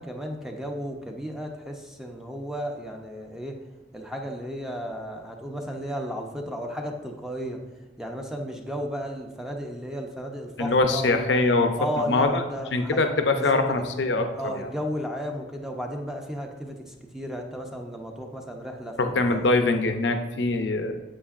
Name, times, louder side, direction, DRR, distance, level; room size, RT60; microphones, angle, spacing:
voice 1, 0.0-3.6 3.9-7.6 8.0-11.2 11.7-13.0 13.3-13.9 14.3-19.5, equal, 5° right, 2 dB, 0.6 m, -34 dB
voice 2, 10.6-11.7 12.1-12.4 12.7-14.3 14.5-14.7 19.0-20.9, left 3 dB, 75° left, 6 dB, 0.7 m, -23 dB
8.5 x 7.3 x 2.5 m, 1.1 s
head